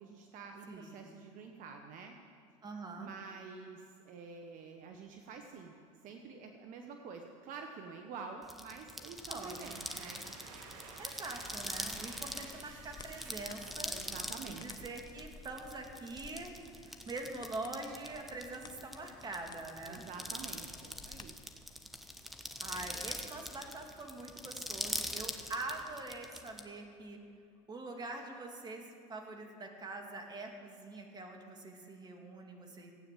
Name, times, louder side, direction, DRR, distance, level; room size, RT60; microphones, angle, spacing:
voice 1, 0.0-2.2 3.0-5.7 6.0-10.2 13.9-14.9 19.9-21.4, right 5 dB, 55° right, 4 dB, 1.2 m, -48 dB
voice 2, 0.7-1.0 2.6-3.1 9.3-9.7 11.0-13.9 14.5-16.5 16.8-20.1 22.6-27.2 27.7-32.9, right 2 dB, 25° right, 3 dB, 2.3 m, -44 dB
sound 1, 8.4-26.6, equal, ahead, 1.2 m, -43 dB
sound 2, 9.2-14.9, right 4 dB, 80° right, 1.8 m, -53 dB
sound 3, 11.9-21.5, left 4 dB, 25° left, 0.6 m, -56 dB
15.5 x 9.1 x 7.4 m, 2.5 s
supercardioid pair, 100°, 17 cm